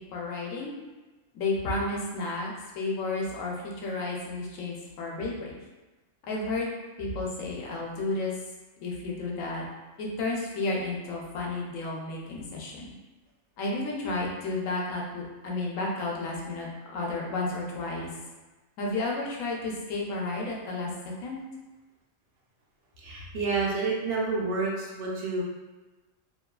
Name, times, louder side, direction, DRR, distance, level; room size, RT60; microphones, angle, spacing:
voice 1, 0.1-0.7 1.3-5.5 6.2-6.7 7.0-8.3 8.8-9.6 10.0-12.9 13.6-18.1 18.8-20.9 21.2-21.4, left 2 dB, 90° left, -2 dB, 1.0 m, -32 dB
voice 2, 23.0-25.4, right 3 dB, 60° right, -3 dB, 0.7 m, -29 dB
3.0 x 2.3 x 2.2 m, 1.2 s
omnidirectional pair, 1.3 m